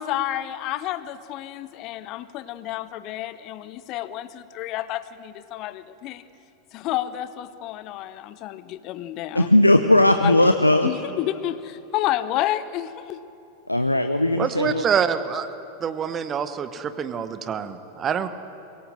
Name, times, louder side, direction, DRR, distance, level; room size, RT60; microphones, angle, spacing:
voice 1, 0.0-6.2 6.7-9.5 10.2-10.5 10.8-13.2, left 13 dB, 40° left, 15 dB, 0.8 m, -30 dB
voice 2, 9.3-10.9 13.7-14.8, left 1 dB, 85° left, 8 dB, 0.7 m, -18 dB
voice 3, 14.4-15.5 15.8-18.3, right 7 dB, 25° right, 12 dB, 1.1 m, -26 dB
22.5 x 17.5 x 7.6 m, 2.8 s
figure-of-eight pair, 90°, 0 cm